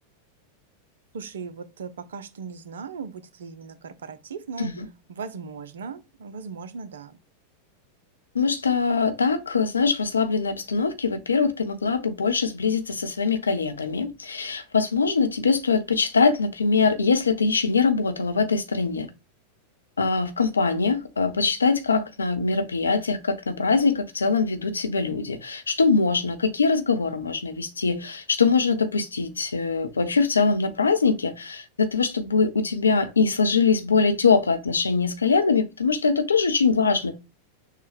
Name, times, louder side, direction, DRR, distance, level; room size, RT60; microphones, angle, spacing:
voice 1, 1.1-4.7 5.1-7.2, right 5 dB, 65° right, 0.6 m, -38 dB
voice 2, 8.3-19.1 20.0-37.1, left 4 dB, 75° left, 0.6 m, -23 dB
6.4 x 2.3 x 3.4 m
figure-of-eight pair, 90°, 0 cm